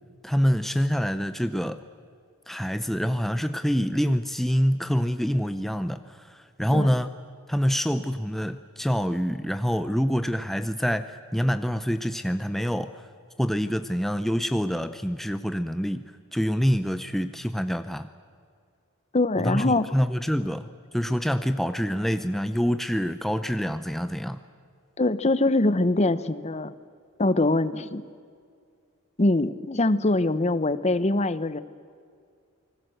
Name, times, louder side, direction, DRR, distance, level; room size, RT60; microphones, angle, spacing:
voice 1, 0.2-1.8 2.5-7.1 7.5-13.1 13.4-16.0 16.3-18.1 19.4-24.4, equal, ahead, 10 dB, 0.6 m, -26 dB
voice 2, 19.1-19.8 25.0-26.7 27.2-28.0 29.2-31.6, left 2 dB, 30° left, 15 dB, 0.9 m, -23 dB
28.5 x 20.5 x 7.9 m, 2.2 s
head